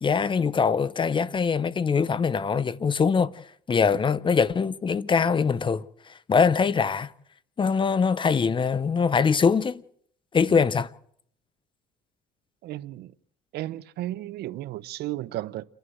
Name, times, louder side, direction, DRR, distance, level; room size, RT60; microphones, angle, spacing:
voice 1, 0.0-3.3 3.7-7.1 7.6-9.8 10.3-10.9, left 5 dB, 30° left, 0.8 m, -23 dB
voice 2, 12.6-13.1 13.5-15.6, right 15 dB, 75° right, 0.8 m, -34 dB
29.0 x 11.5 x 7.8 m
cardioid pair, 110°, 17 cm